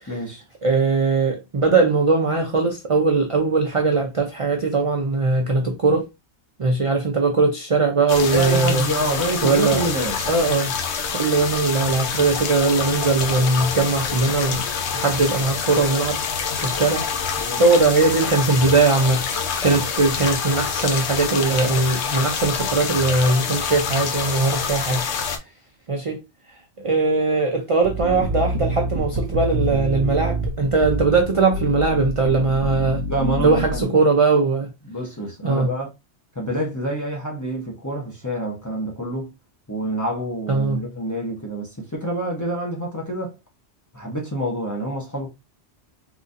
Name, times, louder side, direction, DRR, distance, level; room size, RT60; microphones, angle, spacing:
voice 1, 0.1-0.4 8.2-10.2 17.4-17.6 33.1-33.9 34.9-35.9 36.4-39.3 39.7-43.3 43.9-45.3, right 1 dB, 20° left, 0.7 m, -27 dB
voice 2, 0.6-6.0 6.6-8.8 9.4-9.9 10.2-10.7 11.1-14.6 14.9-16.2 16.6-17.0 17.6-19.2 19.6-25.0 25.9-26.2 26.8-33.0 33.4-34.7 35.4-35.7 40.5-40.8, right 3 dB, 45° right, 0.4 m, -20 dB
sound 1, 8.1-25.4, left 6 dB, 70° left, 0.9 m, -26 dB
sound 2, 27.8-33.8, right 1 dB, 75° right, 0.9 m, -26 dB
3.9 x 2.5 x 2.5 m
omnidirectional pair, 1.2 m